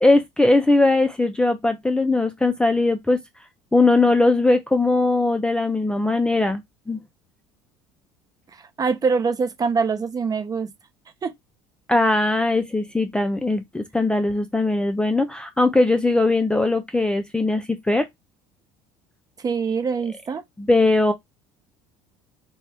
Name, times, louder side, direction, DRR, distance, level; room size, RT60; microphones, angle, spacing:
voice 1, 0.0-3.2 3.7-6.6 6.9-7.0 11.9-18.1 20.6-21.1, left 2 dB, 5° left, 0.4 m, -20 dB
voice 2, 8.8-10.7 11.2-11.3 19.4-20.4, right 5 dB, 30° right, 0.7 m, -23 dB
2.5 x 2.2 x 3.4 m
hypercardioid pair, 75°, 13 cm